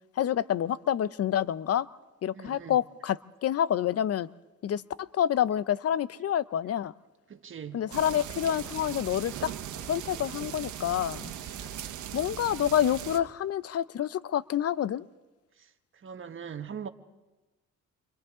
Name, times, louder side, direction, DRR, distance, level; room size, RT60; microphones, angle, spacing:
voice 1, 0.2-1.9 2.2-4.3 4.6-6.9 7.7-9.5 9.9-11.3 12.1-15.0, left 10 dB, 55° left, 0.7 m, -28 dB
voice 2, 2.3-2.8 7.3-7.8 16.0-16.9, right 7 dB, 40° right, 1.5 m, -40 dB
sound 1, 7.9-13.2, right 10 dB, 75° right, 1.5 m, -39 dB
28.5 x 25.0 x 3.8 m
cardioid pair, 90°, 30 cm